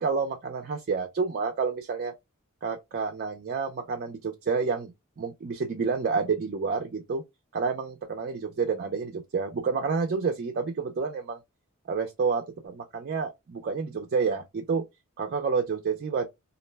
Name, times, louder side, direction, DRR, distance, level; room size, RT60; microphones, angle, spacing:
voice 1, 0.0-2.1 2.6-7.2 7.5-11.4 11.9-14.8 15.2-16.3, right 5 dB, 45° right, 0.4 m, -29 dB
2.3 x 2.1 x 3.2 m
head